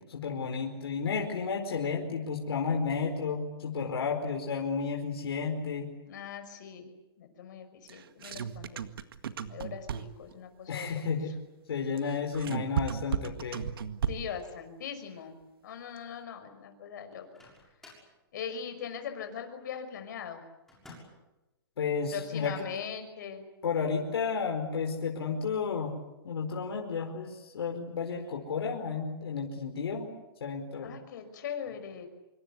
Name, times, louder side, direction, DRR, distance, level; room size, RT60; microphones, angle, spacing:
voice 1, 0.0-5.9 10.7-11.3 11.7-13.7 21.8-22.7 23.6-25.9 26.2-30.1 30.4-30.9, left 5 dB, 80° left, 2 dB, 4.7 m, -32 dB
voice 2, 6.1-6.9 7.2-8.8 9.5-11.0 14.1-15.4 15.6-17.4 18.3-20.4 22.1-23.4 30.8-32.1, left 7 dB, 50° left, 7 dB, 5.7 m, -40 dB
sound 1, 7.9-10.3 12.0-14.4, right 8 dB, 65° right, 1.9 m, -34 dB
Microwave oven, 17.1-18.2 20.7-21.3, left 2 dB, 5° left, 6.4 m, -53 dB
26.5 x 24.5 x 8.4 m, 0.99 s
hypercardioid pair, 170°, 13 cm